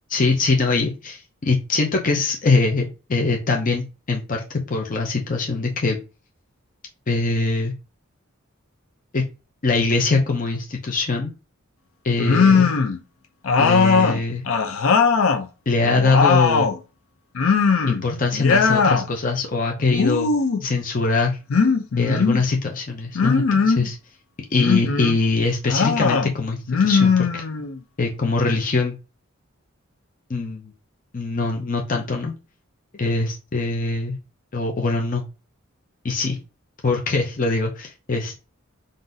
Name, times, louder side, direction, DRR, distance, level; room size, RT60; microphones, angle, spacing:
voice 1, 0.1-1.2 1.4-6.0 7.1-7.7 9.1-9.2 9.6-11.3 12.0-12.7 13.6-14.4 15.7-16.7 17.9-20.3 20.6-21.4 22.0-24.0 24.5-27.4 28.0-28.9 30.3-30.7 31.1-32.3 32.9-34.2 34.5-35.2 36.0-36.4 36.8-38.4, left 3 dB, 40° left, 1 dB, 0.6 m, -22 dB
sound 1, 12.2-13.0 13.4-15.4 15.8-16.8 17.4-18.0 18.3-19.0 19.9-20.7 21.5-22.4 23.2-23.9 24.5-25.2 25.7-26.3 26.7-27.8, left 5 dB, 90° left, 0.6 m, -19 dB
3.9 x 2.6 x 3.8 m, 0.31 s
head